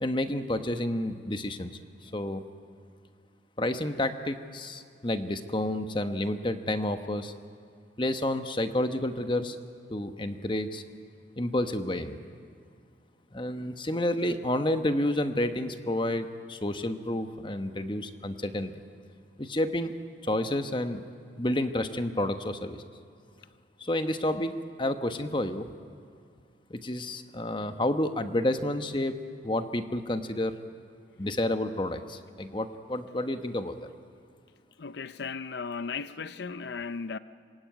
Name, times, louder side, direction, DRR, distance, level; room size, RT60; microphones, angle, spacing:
voice 1, 0.0-1.7 2.0-2.4 3.6-7.3 8.0-9.6 9.9-10.8 11.4-12.2 13.3-18.8 19.4-19.9 20.3-21.0 21.4-22.8 23.8-25.7 26.7-29.2 29.4-30.5 31.2-33.8, left 1 dB, 25° left, 1.1 m, -30 dB
voice 2, 34.8-37.2, left 5 dB, 65° left, 0.6 m, -36 dB
26.0 x 21.5 x 9.3 m
head